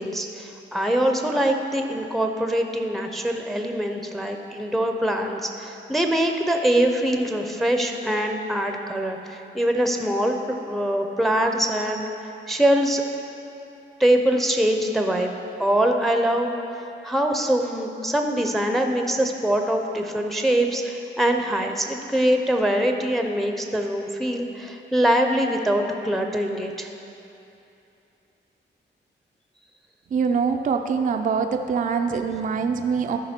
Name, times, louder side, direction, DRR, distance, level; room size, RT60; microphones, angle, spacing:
voice 1, 0.0-10.4 10.7-12.1 12.5-13.0 14.0-15.3 15.6-16.5 17.0-26.9, right 1 dB, ahead, 4 dB, 0.6 m, -23 dB
voice 2, 30.1-33.2, right 5 dB, 45° right, 5 dB, 0.4 m, -24 dB
13.5 x 5.2 x 4.3 m, 2.8 s
wide cardioid pair, 120°, 19 cm